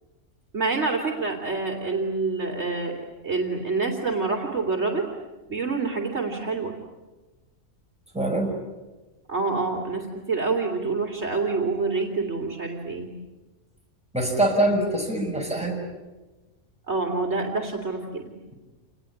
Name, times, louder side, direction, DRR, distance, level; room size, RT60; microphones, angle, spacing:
voice 1, 0.5-5.1 5.5-6.7 9.3-13.1 16.9-18.2, right 3 dB, 55° right, 2 dB, 3.2 m, -27 dB
voice 2, 8.1-8.5 14.1-15.8, right 1 dB, 5° right, 0 dB, 6.2 m, -23 dB
28.5 x 20.0 x 10.0 m, 1.2 s
omnidirectional pair, 1.4 m